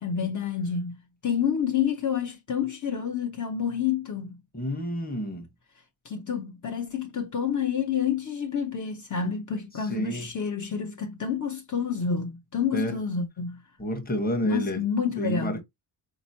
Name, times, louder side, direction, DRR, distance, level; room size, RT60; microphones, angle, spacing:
voice 1, 0.0-4.4 6.0-13.6 14.4-15.6, left 7 dB, 45° left, 0.9 m, -29 dB
voice 2, 4.5-5.5 9.8-10.3 12.7-12.9 13.8-14.8 15.1-15.6, equal, 20° left, 1.2 m, -29 dB
4.4 x 3.0 x 2.7 m
cardioid pair, 110°, 42 cm